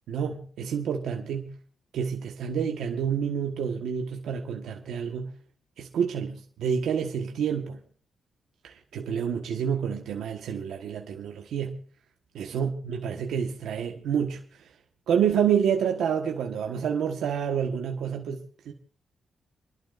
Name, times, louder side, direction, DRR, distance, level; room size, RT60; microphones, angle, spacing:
voice 1, 0.1-1.6 1.9-5.3 5.8-7.8 8.6-11.8 12.3-14.7 15.1-18.7, right 7 dB, 90° right, 1.4 m, -28 dB
30.0 x 12.0 x 2.6 m
cardioid pair, 100°, 0 cm